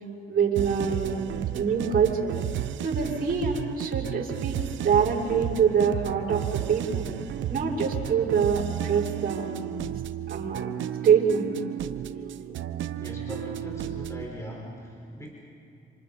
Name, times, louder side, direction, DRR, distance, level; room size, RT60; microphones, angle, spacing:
voice 1, 0.3-1.2 1.5-4.6 4.8-7.0 7.5-9.7 10.3-10.7 11.0-11.5, right 6 dB, 50° right, -8 dB, 6.4 m, -25 dB
sound 1, 0.6-14.3, right 11 dB, 75° right, 0.9 m, -33 dB
voice 2, 12.9-15.3, right 1 dB, 15° left, -1 dB, 4.5 m, -39 dB
27.5 x 26.5 x 5.3 m, 2.6 s
cardioid pair, 90°, 20 cm